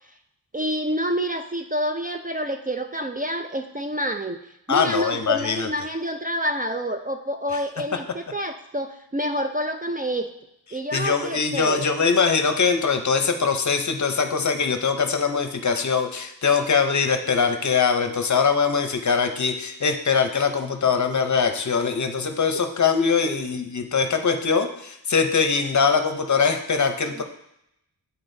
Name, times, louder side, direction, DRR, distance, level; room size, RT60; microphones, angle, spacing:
voice 1, 0.5-4.4 4.7-10.3 10.7-11.9 23.2-23.4 27.2-27.3, equal, 25° right, 5 dB, 0.4 m, -28 dB
voice 2, 4.7-5.7 10.9-27.2, left 5 dB, 45° left, 6 dB, 0.7 m, -22 dB
11.0 x 4.1 x 2.7 m, 0.79 s
wide cardioid pair, 105°, 39 cm